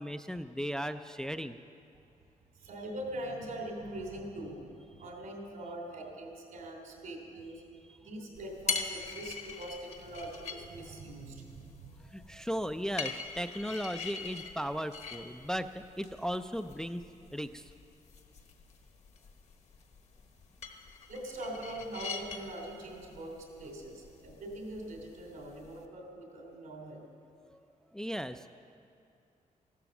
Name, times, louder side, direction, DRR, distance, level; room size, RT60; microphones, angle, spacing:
voice 1, 0.0-1.6 7.9-8.0 12.1-17.0 17.3-17.6 27.5-27.6 27.9-28.5, equal, 5° left, 9 dB, 0.3 m, -36 dB
voice 2, 2.5-4.6 5.0-7.6 8.0-11.9 21.1-27.0, right 1 dB, 75° right, 1 dB, 3.2 m, -42 dB
sound 1, 8.3-25.8, left 5 dB, 55° left, 1.1 m, -43 dB
15.0 x 12.0 x 7.0 m, 2.6 s
wide cardioid pair, 150°, 14 cm